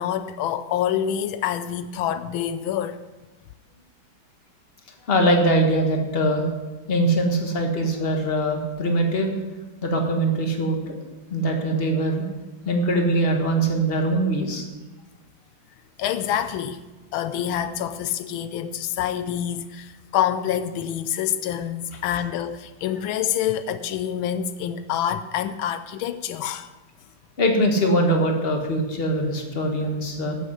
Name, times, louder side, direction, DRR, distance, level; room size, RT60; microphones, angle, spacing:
voice 1, 0.0-3.0 16.0-16.8 17.1-26.7, left 10 dB, 85° left, 1.4 m, -27 dB
voice 2, 5.1-6.5 6.9-9.4 9.8-10.9 11.3-12.2 12.6-14.6 27.4-30.4, right 1 dB, 30° left, 1.6 m, -22 dB
13.5 x 7.2 x 5.5 m
omnidirectional pair, 2.2 m